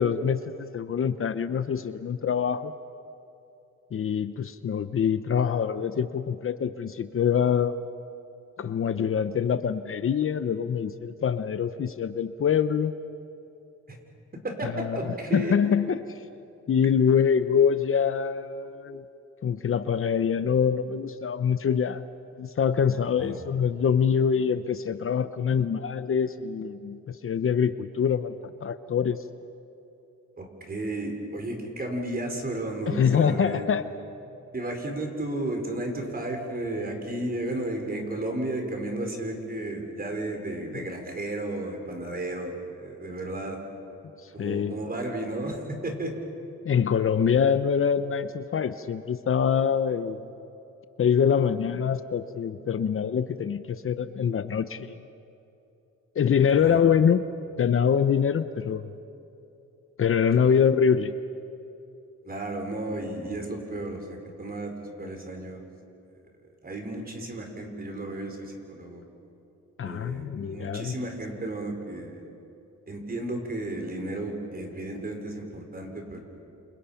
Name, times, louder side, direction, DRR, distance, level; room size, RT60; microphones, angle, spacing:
voice 1, 0.0-2.7 3.9-7.8 8.6-12.9 14.6-15.0 15.3-16.0 16.7-19.0 19.4-22.0 22.4-29.2 32.9-33.8 44.4-44.7 46.6-50.2 51.0-54.9 56.2-57.2 57.6-58.9 60.0-61.1 69.8-70.9, left 7 dB, 45° left, 11 dB, 0.8 m, -24 dB
voice 2, 14.4-15.5 23.2-23.4 30.4-33.6 34.5-43.6 44.3-46.1 56.5-56.8 62.2-65.6 66.6-69.0 69.8-72.2 72.9-76.2, right 1 dB, 30° right, 3 dB, 4.8 m, -33 dB
29.0 x 28.0 x 5.8 m, 2.8 s
cardioid pair, 115°, 29 cm